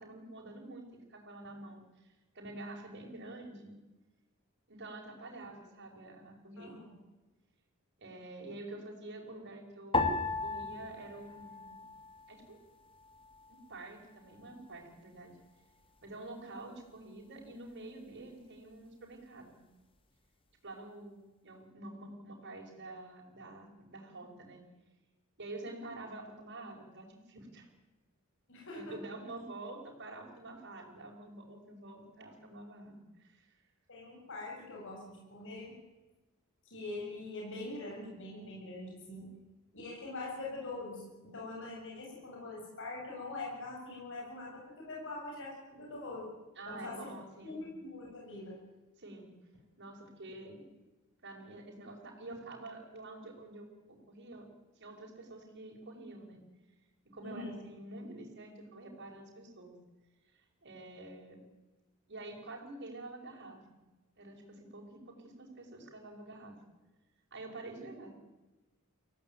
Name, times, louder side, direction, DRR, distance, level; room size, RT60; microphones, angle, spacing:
voice 1, 0.0-3.8 4.7-6.8 8.0-11.8 12.3-12.6 13.5-15.3 16.0-19.6 20.6-24.6 25.4-27.7 28.7-33.5 46.6-47.6 49.0-49.3 49.8-50.6 51.2-54.5 54.8-56.4 57.1-59.8 60.3-61.4 62.1-63.6 64.2-66.6 67.3-68.1, right 2 dB, 55° right, 0 dB, 5.5 m, -48 dB
voice 2, 6.6-7.0 28.5-29.0 33.9-35.7 36.7-39.3 39.7-46.3 46.7-47.1 47.4-48.6 57.2-57.6, left 2 dB, 60° left, -2 dB, 7.2 m, -43 dB
sound 1, 9.9-12.5 12.7-13.6 14.2-14.7, left 3 dB, 25° left, 2.0 m, -36 dB
24.0 x 17.0 x 9.3 m, 1.1 s
head